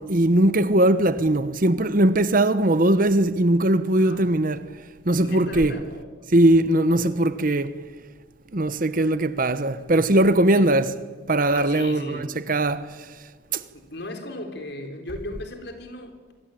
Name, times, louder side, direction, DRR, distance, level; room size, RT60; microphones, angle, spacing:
voice 1, 0.0-4.7 5.0-5.8 6.3-7.7 8.5-10.9 11.3-13.0 13.5-13.6, right 1 dB, 45° right, 1.0 m, -20 dB
voice 2, 4.0-4.3 5.2-6.1 10.5-10.8 11.5-12.4 13.2-16.3, left 1 dB, 55° left, 3.8 m, -37 dB
25.5 x 22.0 x 9.1 m
head